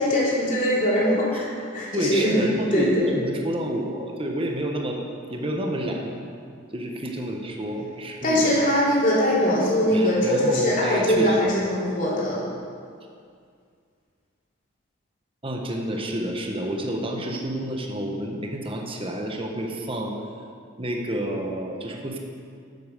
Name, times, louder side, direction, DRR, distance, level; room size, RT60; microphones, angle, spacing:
voice 1, 0.0-2.4 2.7-3.1 8.2-12.4, equal, 40° left, -7 dB, 3.2 m, -22 dB
voice 2, 1.9-5.0 5.3-6.2 6.7-8.6 9.9-11.4 15.4-20.2 20.8-22.2, right 1 dB, 25° right, 1 dB, 1.2 m, -29 dB
10.0 x 8.9 x 6.7 m, 2.2 s
head